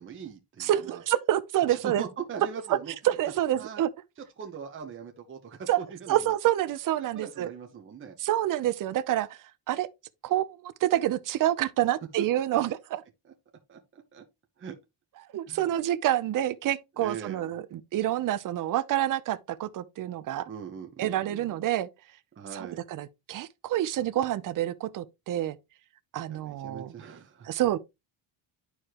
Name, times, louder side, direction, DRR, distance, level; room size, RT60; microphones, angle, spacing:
voice 1, 0.0-1.0 1.7-2.9 3.6-3.8 4.4-6.3 7.1-8.2 12.2-12.3 12.5-12.6 13.2-13.3 13.7-14.2 14.6-14.8 15.5-15.6 17.0-17.5 20.5-21.6 22.4-22.8 26.3-27.5, right 7 dB, 25° right, 1.0 m, -41 dB
voice 2, 0.6-2.0 3.0-3.9 5.7-5.8 6.1-7.5 8.2-9.4 9.7-9.9 10.2-13.0 15.3-20.5 21.0-21.9 22.5-25.6 26.1-26.9 27.4-27.8, right 13 dB, 45° right, 0.6 m, -27 dB
11.0 x 4.8 x 2.9 m
cardioid pair, 165°, 46 cm